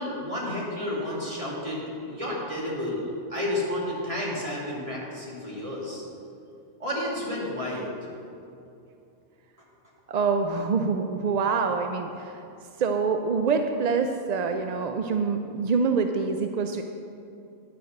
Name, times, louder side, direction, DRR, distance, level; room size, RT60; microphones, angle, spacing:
voice 1, 0.0-6.0 6.8-7.9, left 1 dB, 30° right, -5 dB, 2.4 m, -31 dB
voice 2, 10.1-12.4 12.8-16.8, right 5 dB, 55° right, 5 dB, 0.5 m, -25 dB
10.5 x 6.8 x 6.4 m, 2.7 s
omnidirectional pair, 1.2 m